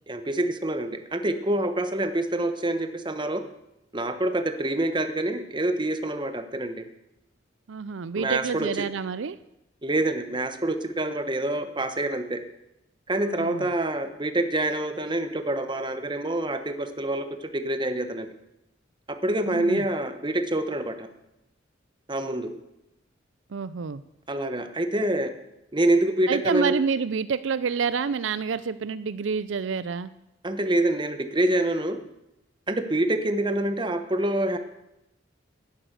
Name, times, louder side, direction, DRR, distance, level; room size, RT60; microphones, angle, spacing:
voice 1, 0.1-3.4 3.9-6.8 8.2-8.7 9.8-12.4 13.1-18.3 19.1-21.1 22.1-22.5 24.3-25.3 25.7-26.7 30.4-32.0 32.7-34.6, right 1 dB, 25° right, 8 dB, 1.2 m, -26 dB
voice 2, 7.7-9.4 13.2-13.7 19.5-19.9 23.5-24.0 26.3-30.1, right 5 dB, 75° right, 15 dB, 0.5 m, -28 dB
12.0 x 10.5 x 8.1 m, 0.88 s
head